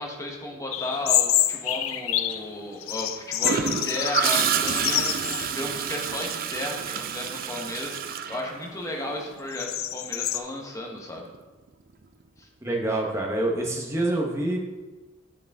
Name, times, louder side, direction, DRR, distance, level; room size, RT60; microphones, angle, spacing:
voice 1, 0.0-11.3 12.4-12.5, left 1 dB, 15° left, -1 dB, 1.1 m, -34 dB
sound 1, 0.7-2.5 2.8-5.5 5.9-6.0 6.7-7.1 7.6-10.4, left 12 dB, 80° left, 0.4 m, -27 dB
Gurgling / Toilet flush, 3.4-9.2 11.2-11.4, right 7 dB, 45° right, 0.4 m, -29 dB
voice 2, 12.6-14.6, right 1 dB, 15° right, -1 dB, 1.0 m, -26 dB
7.8 x 7.1 x 3.6 m, 1.2 s
head